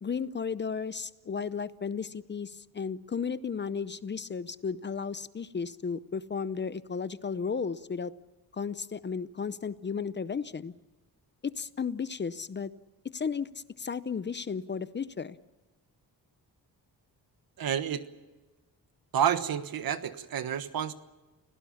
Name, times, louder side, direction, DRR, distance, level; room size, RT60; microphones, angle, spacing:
voice 1, 0.0-8.1 8.5-10.7 11.4-12.7 13.1-13.5 13.8-15.4, left 6 dB, 30° left, 16 dB, 0.6 m, -34 dB
voice 2, 17.6-18.0 19.1-20.9, right 9 dB, 65° right, 12 dB, 1.4 m, -29 dB
29.5 x 17.0 x 7.1 m, 1.2 s
cardioid pair, 115°, 37 cm